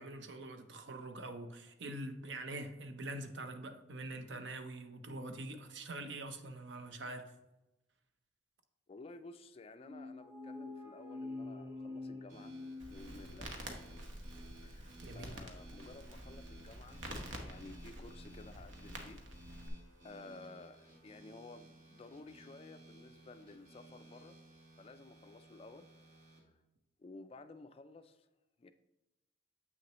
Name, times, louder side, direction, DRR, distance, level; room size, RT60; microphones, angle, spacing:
voice 1, 0.0-7.3 15.0-15.4, right 2 dB, 70° right, 8 dB, 0.7 m, -44 dB
voice 2, 8.9-12.6 12.9-13.5 14.6-17.0 17.4-19.8 20.0-24.4 24.8-25.9 26.5-26.6 27.0-28.3 28.6-28.7, left 3 dB, 30° left, 10 dB, 0.3 m, -54 dB
sound 1, 9.8-13.6, left 2 dB, 15° right, 0.9 m, -46 dB
sound 2, 12.3-26.4, right 1 dB, 45° right, 1.5 m, -58 dB
Crackle, 12.8-19.7, right 1 dB, 85° right, 1.1 m, -48 dB
7.8 x 6.1 x 2.9 m, 0.98 s
head